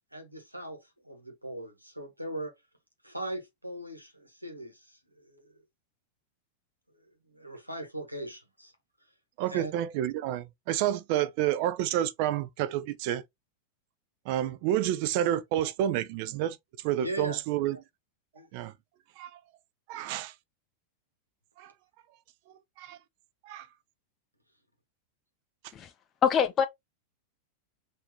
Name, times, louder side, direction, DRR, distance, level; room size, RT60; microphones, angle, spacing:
voice 1, 0.1-2.5 3.0-5.6 6.9-8.7 9.4-9.7 17.0-17.4 18.3-18.5, right 1 dB, 85° right, 1.2 m, -40 dB
voice 2, 9.4-13.2 14.3-16.6 16.8-17.8 18.5-18.7 19.2-19.4 19.9-20.3 21.6-21.7 22.8-23.0 23.5-23.7, right 12 dB, 45° right, 0.5 m, -29 dB
voice 3, 26.2-26.6, left 7 dB, 25° left, 0.4 m, -24 dB
5.6 x 2.7 x 3.0 m
figure-of-eight pair, 90°, 0 cm